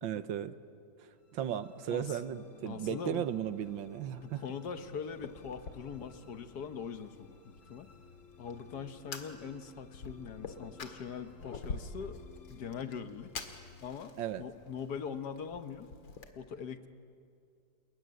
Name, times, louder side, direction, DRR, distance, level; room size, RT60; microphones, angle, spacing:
voice 1, 0.0-0.5 1.3-4.4 14.2-14.4, right 10 dB, 85° right, 12 dB, 1.7 m, -35 dB
sound 1, 1.2-15.5, left 5 dB, 45° left, 1.6 m, -58 dB
voice 2, 1.9-2.2 2.6-3.3 4.2-7.9 8.4-12.2 12.5-13.3 13.8-15.9 16.3-16.9, left 6 dB, 60° left, 9 dB, 1.6 m, -42 dB
Fire, 3.3-16.3, left 4 dB, 80° left, 2.6 m, -48 dB
29.5 x 21.0 x 9.5 m, 2.4 s
omnidirectional pair, 2.1 m